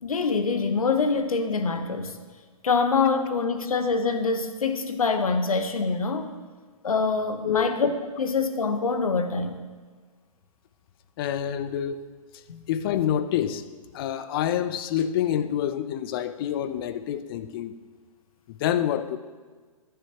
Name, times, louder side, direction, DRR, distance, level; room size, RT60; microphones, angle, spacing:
voice 1, 0.0-2.1 2.6-6.3 6.8-9.6 12.5-12.6, left 4 dB, 75° left, 8 dB, 1.1 m, -25 dB
voice 2, 11.2-12.0 12.7-13.6 13.9-17.7 18.5-19.2, left 10 dB, 40° left, 12 dB, 0.6 m, -27 dB
15.0 x 10.0 x 3.0 m, 1.5 s
figure-of-eight pair, 120°, 18 cm